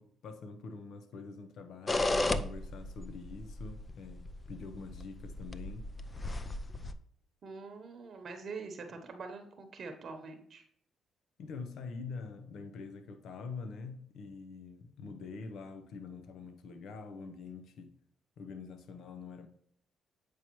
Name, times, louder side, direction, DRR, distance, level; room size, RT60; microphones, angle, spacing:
voice 1, 0.0-5.9 11.4-17.9 18.4-19.5, left 4 dB, 75° left, 0.7 m, -45 dB
sound 1, 1.9-6.9, left 2 dB, 25° left, 0.5 m, -35 dB
voice 2, 7.4-10.6, right 4 dB, 55° right, 0.9 m, -44 dB
8.4 x 4.7 x 3.0 m
cardioid pair, 90°, 0 cm